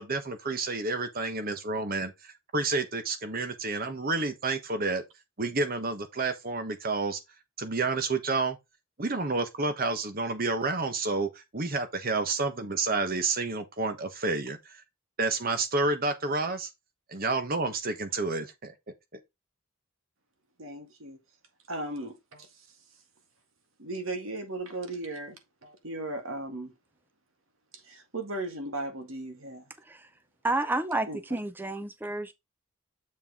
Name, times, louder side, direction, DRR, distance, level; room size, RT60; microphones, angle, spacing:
voice 1, 0.0-5.0 5.4-7.2 7.6-8.6 9.0-14.8 15.2-16.7 17.1-18.7, right 3 dB, 45° right, 1.1 m, -30 dB
voice 2, 20.6-21.2 21.7-22.7 23.8-26.7 27.7-29.7 31.1-31.2, right 2 dB, 70° right, 1.8 m, -37 dB
voice 3, 30.4-32.3, right 2 dB, 10° right, 0.5 m, -30 dB
7.5 x 4.4 x 3.6 m
head